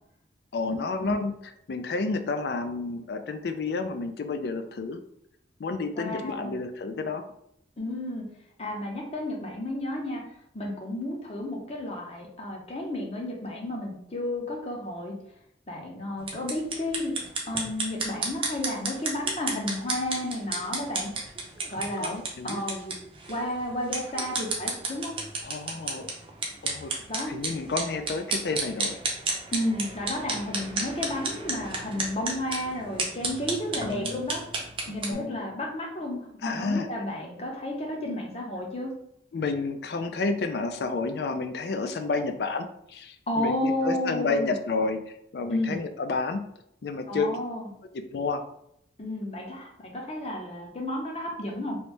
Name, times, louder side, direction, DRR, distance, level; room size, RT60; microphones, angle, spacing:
voice 1, 0.5-1.3 1.7-5.0 5.6-7.3 21.8-22.6 25.4-26.1 26.6-26.9 27.3-29.0 33.8-34.3 35.1-35.5 36.4-36.9 39.3-46.4 46.8-47.3 48.1-48.4, left 3 dB, 60° left, 8 dB, 0.4 m, -30 dB
voice 2, 5.9-6.6 7.8-8.3 8.6-10.2 10.5-15.1 15.7-17.1 17.5-21.1 21.7-22.1 22.4-22.9 23.3-25.1 27.1-27.3 29.5-34.4 34.9-38.9 43.3-44.5 45.5-45.8 47.1-47.7 49.0-51.8, left 1 dB, 35° left, 0 dB, 0.7 m, -32 dB
sound 1, 16.2-35.1, right 3 dB, 30° right, 0.6 m, -33 dB
3.1 x 2.6 x 3.2 m, 0.74 s
head